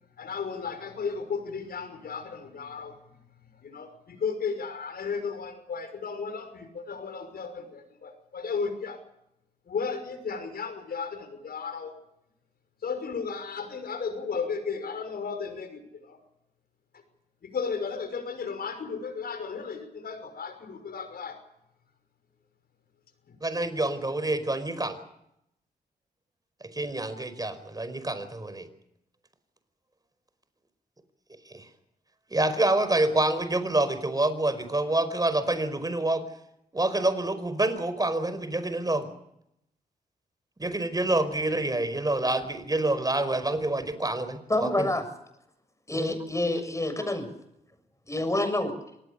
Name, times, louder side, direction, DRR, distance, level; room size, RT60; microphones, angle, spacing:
voice 1, 0.2-3.0 3.6-9.0 9.7-12.0 12.8-16.2 17.4-21.4 23.3-23.4, left 5 dB, 70° left, 9 dB, 5.7 m, -34 dB
voice 2, 23.4-25.0 26.7-28.7 31.5-31.6 32.3-36.2 36.7-39.1 40.6-44.9 45.9-46.2, right 2 dB, 25° right, 11 dB, 4.9 m, -27 dB
voice 3, 44.5-45.0 45.9-47.3 48.1-48.7, left 1 dB, 20° left, 10 dB, 7.1 m, -27 dB
26.0 x 19.5 x 6.9 m, 0.80 s
cardioid pair, 60°, 17 cm